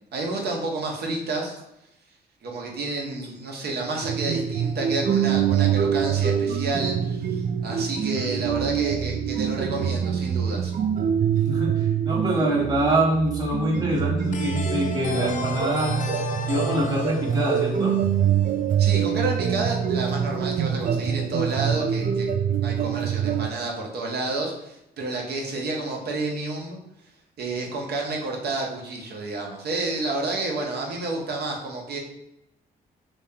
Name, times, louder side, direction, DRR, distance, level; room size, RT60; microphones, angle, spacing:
voice 1, 0.1-1.6 2.4-10.7 18.8-22.3 22.6-26.8 27.4-32.0, right 2 dB, 70° right, 0 dB, 1.0 m, -30 dB
sound 1, 4.0-23.5, right 8 dB, 55° right, 0.4 m, -25 dB
voice 2, 11.5-16.0 16.5-17.9, right 1 dB, 20° right, -4 dB, 1.3 m, -25 dB
sound 2, 14.3-19.0, left 5 dB, 50° left, 0.5 m, -35 dB
3.0 x 2.8 x 3.6 m, 0.84 s
cardioid pair, 85°, 17 cm